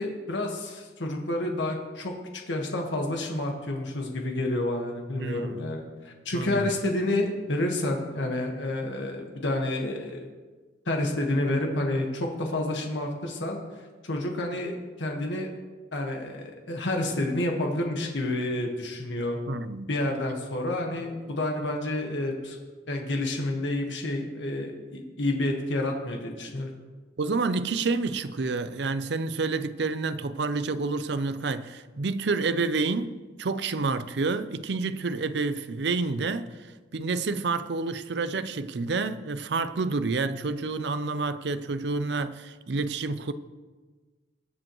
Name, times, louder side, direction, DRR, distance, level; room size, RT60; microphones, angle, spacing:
voice 1, 0.0-2.1 2.5-10.3 10.9-13.6 14.0-15.5 15.9-19.4 19.9-22.6 22.9-26.7, left 1 dB, 80° left, 1.5 m, -29 dB
voice 2, 5.2-5.6 6.3-6.6 19.5-19.9 27.2-43.3, right 3 dB, 65° right, 0.5 m, -29 dB
21.0 x 7.7 x 3.1 m
head